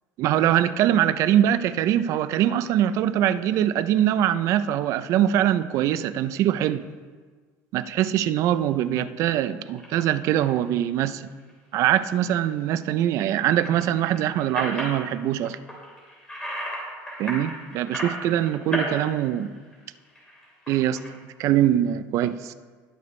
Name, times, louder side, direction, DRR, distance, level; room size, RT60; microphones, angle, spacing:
voice 1, 0.2-6.9 7.7-11.2 11.7-15.6 17.2-19.5 20.7-21.0 21.4-22.5, right 11 dB, 45° right, 13 dB, 0.4 m, -23 dB
sound 1, 9.7-9.9 10.4-10.7 11.1-11.5 13.4-15.0 15.4-16.8 17.1-18.9 19.2-21.1, equal, 10° left, 3.0 m, -34 dB
20.5 x 6.8 x 3.2 m, 1.5 s
cardioid pair, 170°, 7 cm